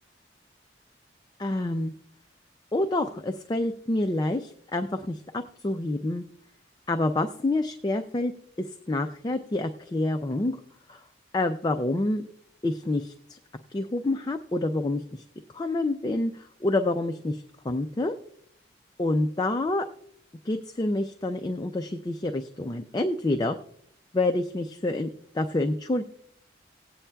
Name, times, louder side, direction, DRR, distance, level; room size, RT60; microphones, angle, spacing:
voice 1, 1.4-1.9 2.7-6.2 6.9-8.3 8.6-10.6 10.9-11.0 11.3-12.2 12.6-13.4 13.7-15.2 15.5-18.1 19.0-19.9 20.5-23.6 24.1-25.1 25.3-26.0, left 2 dB, 20° left, 6 dB, 0.4 m, -27 dB
19.0 x 8.5 x 2.2 m, 0.69 s
head